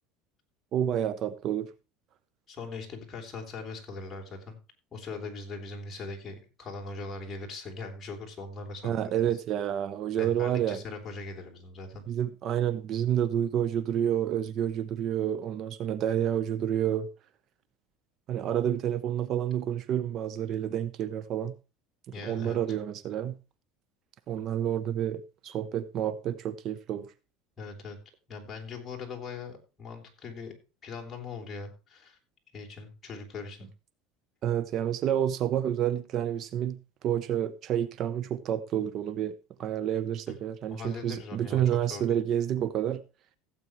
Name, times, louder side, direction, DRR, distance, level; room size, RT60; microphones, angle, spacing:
voice 1, 0.7-1.7 8.8-10.8 12.1-17.1 18.3-21.6 22.2-23.4 24.3-27.1 34.4-39.3 39.6-43.0, right 10 dB, 45° right, 0.7 m, -29 dB
voice 2, 2.5-4.6 4.9-9.4 10.2-12.0 22.1-22.6 27.6-28.0 28.3-30.5 30.8-32.2 32.5-33.7 40.3-40.4 40.7-42.2, left 4 dB, 20° left, 3.6 m, -40 dB
16.0 x 8.4 x 3.0 m
supercardioid pair, 140°, 0 cm